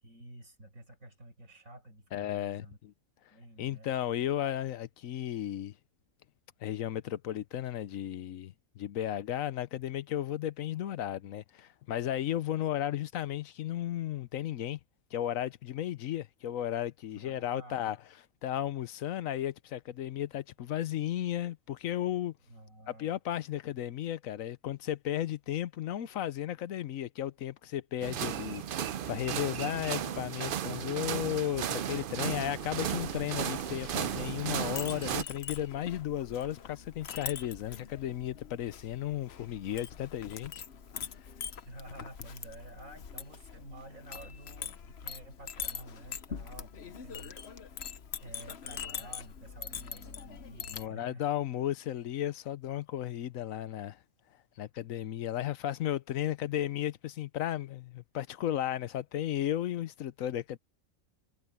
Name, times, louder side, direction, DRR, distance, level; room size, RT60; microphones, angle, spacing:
voice 1, 0.0-2.8 3.3-3.9 17.1-17.9 22.5-23.1 41.7-47.3 48.1-51.2, right 1 dB, 85° right, 7.5 m, -50 dB
voice 2, 2.1-2.9 3.6-5.7 6.6-14.8 15.1-18.0 18.4-22.3 22.9-40.6 41.1-41.3 50.7-54.0 54.6-60.6, left 11 dB, 85° left, 1.1 m, -34 dB
sound 1, 28.0-35.2, right 9 dB, 55° right, 0.6 m, -35 dB
Chink clink, 32.3-50.9, left 7 dB, 55° left, 1.1 m, -44 dB
omnidirectional pair, 1.4 m